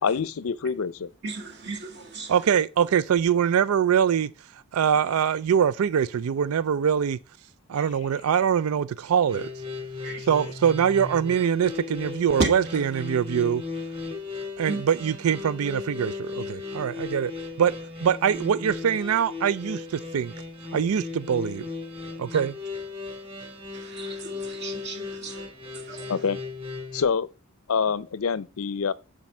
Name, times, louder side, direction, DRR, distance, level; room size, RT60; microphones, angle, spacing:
voice 1, 0.0-1.1 26.1-26.4 26.9-27.3 27.7-28.9, left 6 dB, 80° left, 0.5 m, -26 dB
voice 2, 1.2-2.5 10.0-10.2 12.4-12.8 14.7-14.8 23.7-25.5 25.7-26.2, right 2 dB, 50° right, 2.0 m, -34 dB
voice 3, 2.3-4.3 4.7-7.2 7.7-9.5 10.3-13.6 14.6-17.3 17.6-17.7 18.0-20.3 20.7-21.6 22.2-22.5, right 8 dB, 90° right, 0.4 m, -23 dB
sound 1, 9.3-27.0, left 4 dB, 25° right, 3.8 m, -36 dB
7.4 x 5.3 x 7.1 m
head